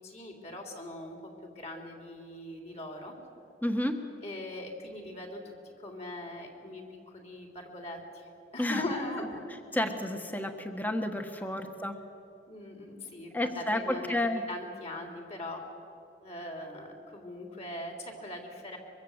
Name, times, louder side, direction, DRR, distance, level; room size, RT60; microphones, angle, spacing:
voice 1, 0.0-3.1 4.2-9.4 11.4-11.6 12.5-15.7 16.2-18.8, left 1 dB, 35° left, 2 dB, 3.5 m, -41 dB
voice 2, 3.6-4.0 8.6-8.8 9.7-12.0 13.3-14.4, left 1 dB, 10° left, 6 dB, 1.4 m, -31 dB
23.5 x 23.5 x 8.0 m, 2.8 s
head